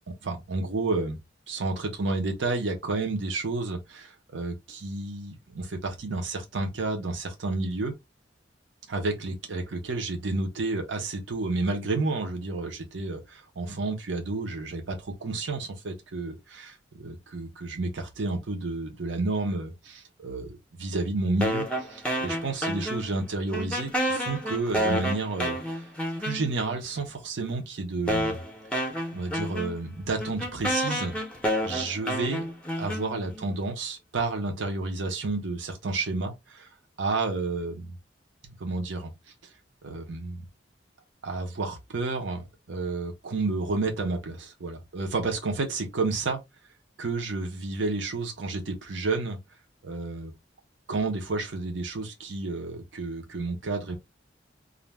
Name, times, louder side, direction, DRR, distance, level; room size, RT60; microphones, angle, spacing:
voice 1, 0.1-1.2 1.5-7.9 8.9-25.9 26.2-28.4 29.1-31.2 31.6-32.5 32.8-36.7 37.0-38.0 38.4-39.1 39.8-40.5 41.2-46.4 47.0-49.4 49.8-50.3 50.9-53.9, right 3 dB, 80° right, 0.7 m, -31 dB
sound 1, 21.4-23.3 23.5-26.8 27.5-27.6 28.1-33.5, equal, 5° left, 0.5 m, -30 dB
2.5 x 2.1 x 3.2 m
head